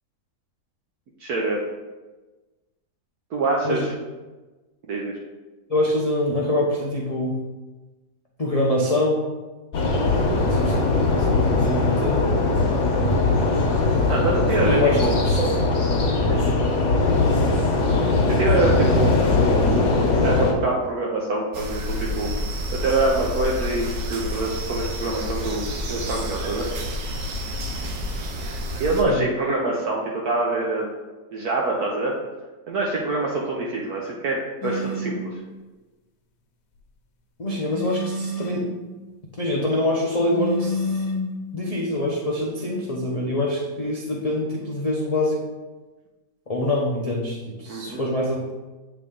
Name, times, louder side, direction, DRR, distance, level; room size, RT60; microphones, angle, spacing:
voice 1, 1.2-1.7 3.3-3.9 4.9-5.2 10.2-10.6 14.1-15.2 16.2-16.5 18.3-19.2 20.2-22.4 22.7-26.7 28.8-30.9 31.3-32.1 32.7-35.4 47.7-48.0, right 2 dB, 65° right, -3 dB, 1.2 m, -25 dB
voice 2, 5.7-7.4 8.4-9.3 10.5-12.3 14.7-15.5 17.1-17.3 29.1-29.2 37.4-38.7 39.4-41.0 41.5-45.4 46.5-48.5, left 1 dB, 65° left, -3 dB, 0.3 m, -25 dB
sound 1, 9.7-20.5, left 3 dB, 50° left, 1.2 m, -20 dB
sound 2, 21.5-29.0, left 1 dB, 85° right, 1.4 m, -29 dB
sound 3, 34.6-35.2 37.7-38.7 40.3-41.3, left 1 dB, 80° left, 1.4 m, -28 dB
7.9 x 3.6 x 3.6 m, 1.2 s
omnidirectional pair, 1.8 m